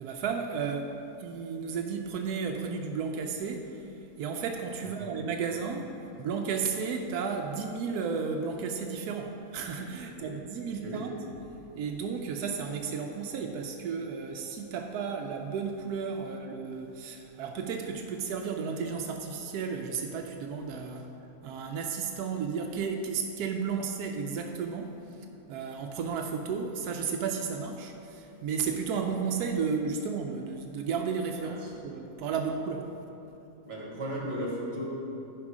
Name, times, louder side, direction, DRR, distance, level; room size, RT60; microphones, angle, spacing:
voice 1, 0.0-11.2 11.7-21.1 21.4-32.9, right 5 dB, 85° right, 3 dB, 1.1 m, -33 dB
voice 2, 4.8-5.1 10.0-10.3 10.7-11.0 31.4-31.7 33.7-34.8, equal, 45° right, -3 dB, 1.8 m, -36 dB
11.0 x 5.2 x 4.8 m, 3.0 s
omnidirectional pair, 1.6 m